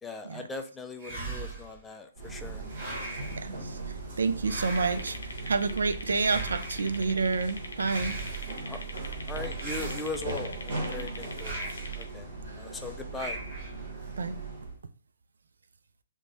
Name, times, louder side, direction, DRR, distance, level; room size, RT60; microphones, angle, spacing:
voice 1, 0.0-2.6 8.7-8.8 9.3-13.4, left 3 dB, 10° left, 5 dB, 0.3 m, -40 dB
sound 1, 1.0-1.8 2.7-3.5 4.4-5.2 6.2-6.9 7.8-8.6 9.5-10.4 11.3-12.0 13.1-13.8, right 2 dB, 40° right, 1.5 m, -39 dB
sound 2, 2.1-14.8, right 3 dB, 65° right, 1.2 m, -39 dB
voice 2, 3.4-3.7 4.2-5.2 5.4-8.1 14.2-14.4, right 4 dB, 80° right, 10 dB, 0.3 m, -28 dB
sound 3, 4.8-12.0, left 2 dB, 85° left, 0.6 m, -43 dB
3.0 x 2.1 x 2.7 m, 0.38 s
hypercardioid pair, 140°, 0 cm